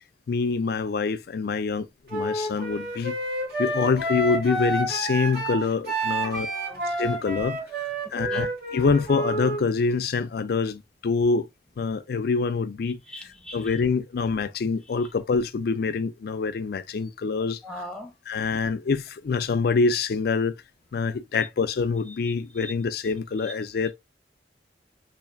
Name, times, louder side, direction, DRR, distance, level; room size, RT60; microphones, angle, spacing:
voice 1, 0.3-3.2 3.6-6.5 6.8-7.6 8.1-11.5 11.8-17.6 18.3-20.5 20.9-23.9, left 4 dB, 60° left, 0.4 m, -25 dB
Wind instrument woodwind instrument, 2.1-9.6, right 1 dB, 60° right, 1.9 m, -29 dB
voice 2, 6.5-6.8 8.2-8.5 13.1-13.8 17.6-18.1 22.6-22.7 23.4-23.5, equal, 5° left, 0.7 m, -39 dB
5.5 x 2.6 x 2.4 m
head